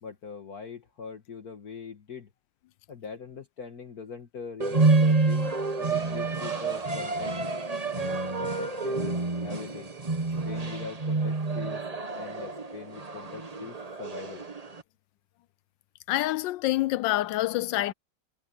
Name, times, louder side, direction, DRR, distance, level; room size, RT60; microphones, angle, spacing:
voice 1, 0.0-2.3 2.9-7.3 7.9-9.9 10.5-14.5, left 5 dB, 55° left, 2.0 m, -42 dB
sound 1, 4.6-14.8, right 3 dB, 25° right, 1.2 m, -28 dB
voice 2, 16.1-17.9, left 16 dB, 85° left, 1.3 m, -26 dB
omnidirectional pair, 2.0 m